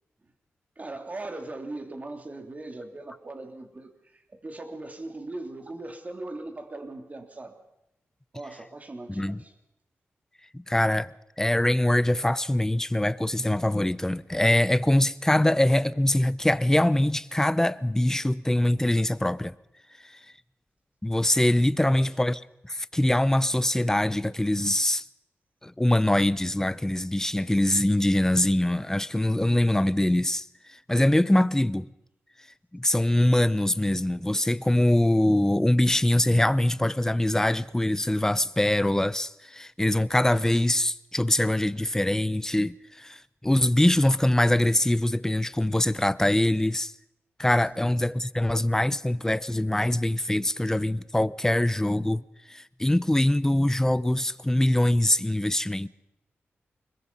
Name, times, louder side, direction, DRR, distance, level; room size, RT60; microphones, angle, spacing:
voice 1, 0.8-7.6 8.3-9.5 21.8-22.2 47.7-47.9, right 2 dB, 35° right, 3.0 m, -39 dB
voice 2, 10.5-11.1 11.4-19.5 21.0-25.0 25.6-30.4 30.9-31.9 32.7-46.9 47.4-55.9, left 1 dB, 10° left, 0.7 m, -23 dB
25.0 x 21.5 x 5.5 m
cardioid pair, 70°, 5 cm